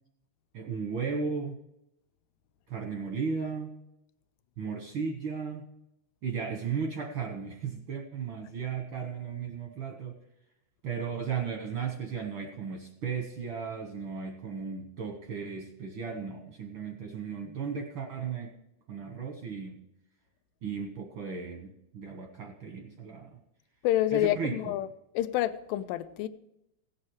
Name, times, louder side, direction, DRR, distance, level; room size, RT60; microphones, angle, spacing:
voice 1, 0.5-1.6 2.7-3.7 4.6-5.7 6.2-10.2 10.8-18.5 18.9-19.8 20.6-23.4 24.1-24.7, right 6 dB, 70° right, 1.2 m, -35 dB
voice 2, 23.8-24.9 25.2-26.3, left 13 dB, 85° left, 2.2 m, -28 dB
16.5 x 7.5 x 4.7 m
omnidirectional pair, 3.8 m